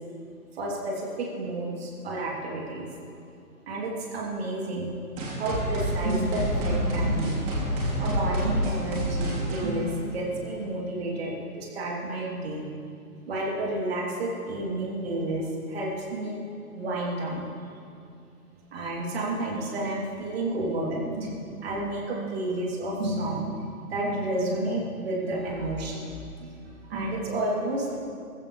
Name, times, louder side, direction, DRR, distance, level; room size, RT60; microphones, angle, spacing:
voice 1, 0.5-2.9 3.7-4.9 5.4-7.4 8.0-12.6 13.3-16.4 16.7-17.7 18.7-28.0, right 1 dB, 40° right, -3 dB, 3.3 m, -31 dB
sound 1, 5.2-10.6, right 1 dB, 20° right, 2.9 m, -28 dB
20.0 x 15.0 x 3.4 m, 2.4 s
figure-of-eight pair, 145°, 46 cm